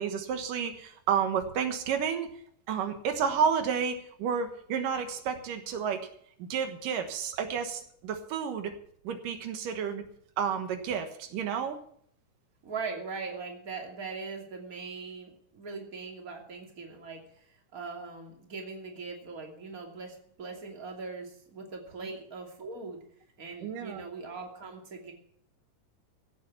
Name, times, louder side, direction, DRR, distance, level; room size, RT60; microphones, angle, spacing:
voice 1, 0.0-2.3 2.7-6.1 6.4-8.7 9.0-10.0 10.4-11.8 23.6-24.0, right 7 dB, 85° right, 6 dB, 3.0 m, -31 dB
voice 2, 12.6-23.0 23.4-25.1, right 4 dB, 25° right, 1 dB, 2.9 m, -41 dB
16.0 x 8.3 x 7.0 m, 0.64 s
omnidirectional pair, 3.7 m